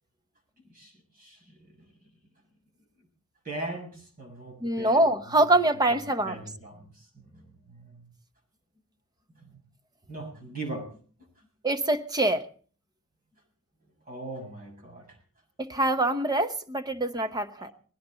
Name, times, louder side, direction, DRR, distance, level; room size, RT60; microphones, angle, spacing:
voice 1, 3.4-3.9 4.2-5.0 6.2-6.8 7.3-8.0 10.1-10.9 14.1-15.0 17.6-17.7, right 2 dB, 40° right, 1 dB, 7.0 m, -39 dB
voice 2, 4.6-6.4 11.6-12.5 15.6-17.7, right 2 dB, 20° right, 8 dB, 1.0 m, -24 dB
20.0 x 17.0 x 4.0 m, 0.43 s
head